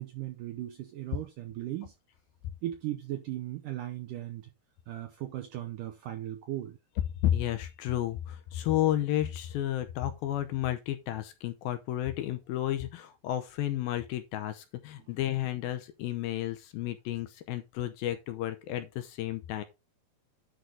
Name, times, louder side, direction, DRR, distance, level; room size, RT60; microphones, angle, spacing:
voice 1, 0.0-1.9 2.6-4.5 4.9-6.8, right 14 dB, 80° right, 1.9 m, -37 dB
voice 2, 7.2-19.6, left 13 dB, 80° left, 2.3 m, -32 dB
10.5 x 3.9 x 4.6 m
omnidirectional pair, 4.7 m